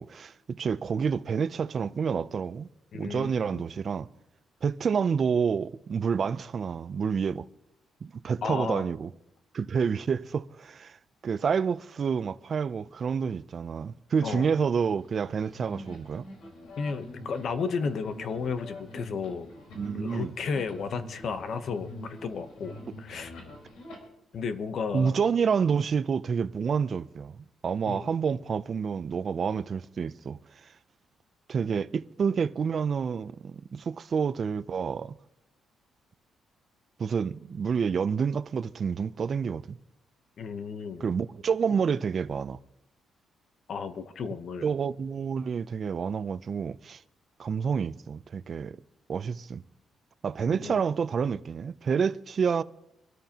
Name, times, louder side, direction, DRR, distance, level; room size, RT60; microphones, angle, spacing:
voice 1, 0.0-2.7 2.9-4.1 4.6-7.5 8.0-9.1 9.5-11.0 11.2-16.3 19.8-20.3 24.9-30.4 31.5-35.1 37.0-39.8 41.0-42.6 44.6-47.0 47.4-48.8 49.1-49.6 50.2-52.6, right 6 dB, 40° right, 0.4 m, -28 dB
voice 2, 2.9-3.6 8.4-8.9 14.2-14.5 16.8-19.5 19.9-23.3 24.3-25.1 27.9-28.1 40.4-41.1 43.7-44.7 50.5-50.8, left 5 dB, 50° left, 0.8 m, -33 dB
sound 1, 15.0-24.0, left 1 dB, 85° left, 4.2 m, -45 dB
25.5 x 13.0 x 2.9 m
cardioid pair, 145°, 0 cm